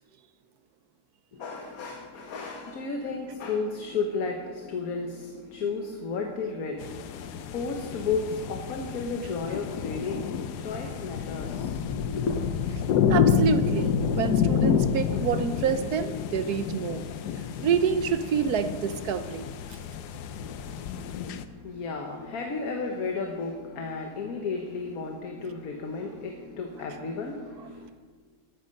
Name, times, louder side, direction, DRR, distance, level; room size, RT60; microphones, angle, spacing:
voice 1, 1.3-12.4 20.4-27.9, left 4 dB, 65° left, 3 dB, 1.6 m, -33 dB
sound 1, 6.8-21.4, left 7 dB, 90° left, 1.3 m, -29 dB
voice 2, 13.1-17.0 17.6-19.5, right 6 dB, 75° right, 11 dB, 1.3 m, -27 dB
14.0 x 11.5 x 5.3 m, 1.6 s
omnidirectional pair, 1.7 m